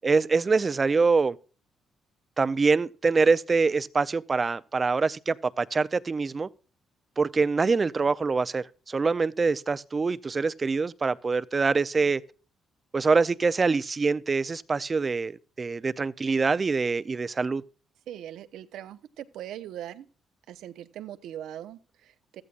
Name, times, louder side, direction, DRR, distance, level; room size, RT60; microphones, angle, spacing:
voice 1, 0.0-1.4 2.4-6.5 7.2-12.2 12.9-17.6, right 4 dB, 30° right, 0.6 m, -25 dB
voice 2, 18.1-20.0 20.5-22.4, right 11 dB, 80° right, 0.9 m, -40 dB
15.0 x 14.0 x 2.5 m
cardioid pair, 90°, 0 cm